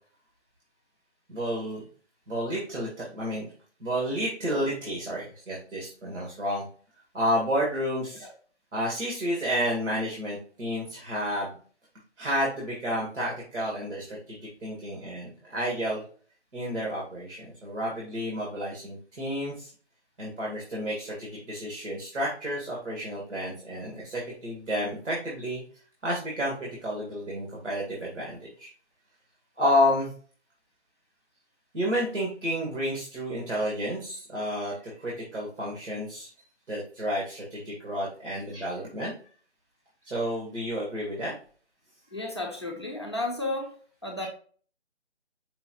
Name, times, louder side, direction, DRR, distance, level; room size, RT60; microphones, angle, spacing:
voice 1, 1.3-1.8 2.3-3.5 3.8-6.7 7.1-8.3 8.7-11.5 12.2-16.0 16.5-19.7 20.2-25.6 26.0-28.7 29.6-30.1 31.7-36.3 36.7-39.1 40.0-41.3 44.2-44.3, equal, 85° right, -3 dB, 1.7 m, -30 dB
voice 2, 42.1-43.8 44.0-44.3, left 2 dB, 25° left, -1 dB, 0.5 m, -32 dB
5.4 x 2.4 x 2.8 m, 0.44 s
hypercardioid pair, 170°, 35 cm